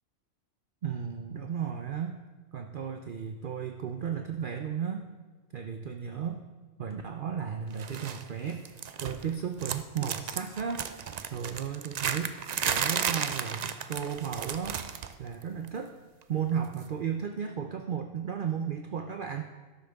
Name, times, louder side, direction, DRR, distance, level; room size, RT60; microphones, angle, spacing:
voice 1, 0.8-2.2 2.5-5.0 5.5-6.4 6.8-8.6 9.0-10.8 11.3-12.3 12.7-14.8 15.2-15.9 16.3-19.4, right 7 dB, 50° right, 5 dB, 0.7 m, -34 dB
sound 1, 7.8-8.2 8.5-9.3 9.6-15.2 15.4-15.7 16.8-16.9, right 7 dB, 85° right, 0.3 m, -33 dB
12.5 x 12.0 x 3.5 m, 1.3 s
omnidirectional pair, 1.4 m